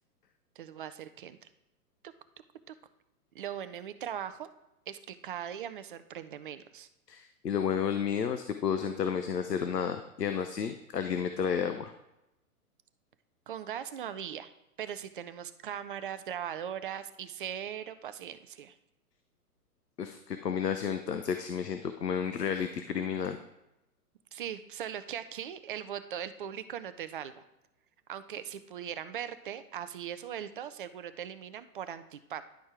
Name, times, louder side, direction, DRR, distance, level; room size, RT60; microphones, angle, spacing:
voice 1, 0.6-1.4 3.3-4.5 4.9-6.9 13.5-14.5 14.8-18.7 24.3-27.4 28.1-32.4, right 9 dB, 35° right, 12 dB, 0.4 m, -39 dB
voice 2, 7.1-11.9 20.0-23.4, left 7 dB, 90° left, 8 dB, 0.8 m, -31 dB
10.5 x 4.4 x 4.8 m, 0.90 s
hypercardioid pair, 120°, 47 cm